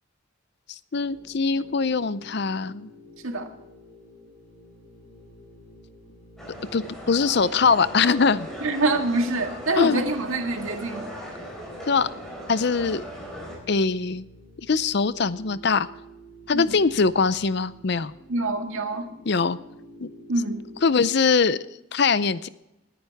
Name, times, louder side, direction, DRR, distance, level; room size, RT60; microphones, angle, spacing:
sound 1, 0.9-20.9, equal, 90° left, 5.2 m, -49 dB
voice 1, 0.9-2.9 6.7-8.5 9.8-10.0 11.9-12.1 12.5-13.0 13.7-14.2 14.7-15.9 16.5-18.1 19.3-19.6 20.0-20.1 20.8-21.6 21.9-22.5, left 5 dB, 55° left, 16 dB, 0.5 m, -22 dB
sound 2, 6.4-13.6, equal, ahead, 4.5 m, -39 dB
voice 2, 8.6-11.1 16.5-16.8 18.3-19.1 20.3-20.7, right 2 dB, 85° right, 4 dB, 1.9 m, -25 dB
20.0 x 10.0 x 3.5 m, 0.90 s
head